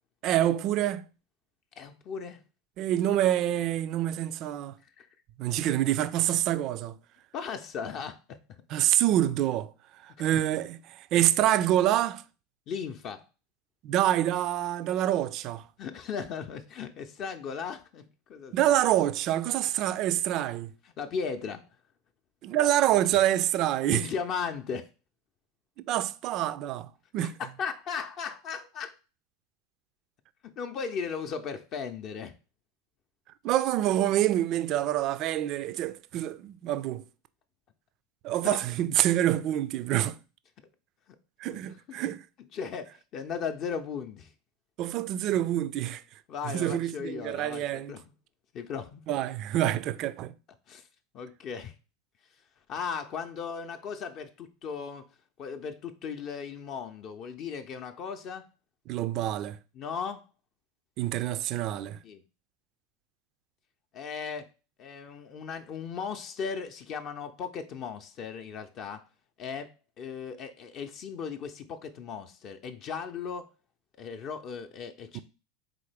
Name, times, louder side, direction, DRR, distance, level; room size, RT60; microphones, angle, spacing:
voice 1, 0.2-1.1 2.8-4.8 5.4-7.0 8.7-9.7 10.0-10.8 11.1-12.2 13.8-15.6 18.5-20.7 22.4-24.0 25.8-26.9 27.1-27.4 33.4-37.0 38.2-40.2 41.4-42.2 44.8-46.0 46.4-47.9 49.1-50.3 58.9-59.6 61.0-62.0, right 12 dB, 50° right, 0.3 m, -26 dB
voice 2, 1.8-2.4 5.0-5.1 7.3-8.4 10.2-10.4 11.1-11.2 12.7-13.2 15.8-18.5 21.0-21.6 23.9-24.9 27.2-28.9 30.6-32.3 38.5-38.6 42.5-44.3 46.3-48.1 48.5-49.0 50.7-50.9 51.1-51.7 52.7-55.1 55.4-58.4 59.7-60.2 62.0-62.2 63.9-64.5 64.8-69.0 69.4-73.5 74.0-75.2, left 6 dB, 45° left, 0.5 m, -37 dB
3.8 x 3.8 x 3.3 m
hypercardioid pair, 85°, 0 cm